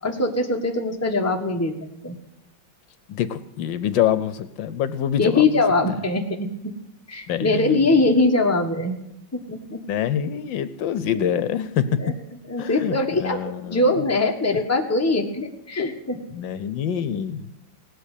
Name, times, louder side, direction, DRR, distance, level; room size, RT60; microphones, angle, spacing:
voice 1, 0.0-1.7 2.0-2.2 5.2-6.7 7.1-9.0 9.3-9.8 12.0-12.1 12.5-16.2, left 2 dB, 10° left, 2 dB, 1.3 m, -22 dB
voice 2, 3.1-5.4 7.3-7.8 9.9-11.9 12.6-13.8 16.3-17.4, left 9 dB, 75° left, 14 dB, 1.4 m, -25 dB
17.5 x 8.1 x 8.3 m, 0.85 s
omnidirectional pair, 2.1 m